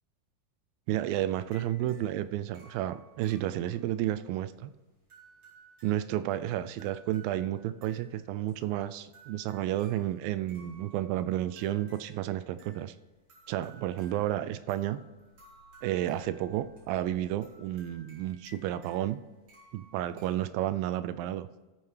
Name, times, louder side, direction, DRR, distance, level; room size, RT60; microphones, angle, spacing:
voice 1, 0.9-4.7 5.8-12.9 13.5-15.0 15.8-19.2 19.7-21.5, right 13 dB, 85° right, 13 dB, 2.3 m, -31 dB
sound 1, 1.3-20.8, right 1 dB, 50° right, 5.4 m, -58 dB
16.0 x 9.0 x 3.3 m, 1.2 s
omnidirectional pair, 4.1 m